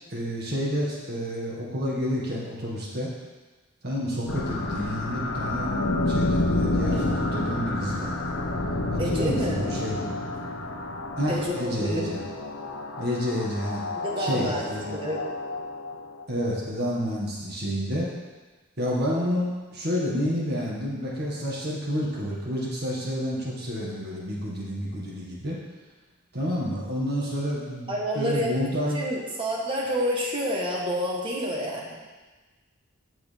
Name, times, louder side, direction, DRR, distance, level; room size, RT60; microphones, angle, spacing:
voice 1, 0.1-3.1 3.8-5.7 6.0-8.3 8.9-10.1 11.2-12.2 13.0-13.8 14.2-15.0 16.3-18.1 18.8-25.6 26.3-29.0, equal, 50° right, -4 dB, 1.8 m, -29 dB
sound 1, 4.3-16.2, left 2 dB, 80° left, 0.9 m, -29 dB
voice 2, 9.0-9.6 11.3-12.0 14.0-14.7 14.9-15.2 27.9-28.5 28.9-31.9, equal, 25° right, -3 dB, 1.3 m, -28 dB
8.6 x 6.8 x 3.5 m, 1.3 s
head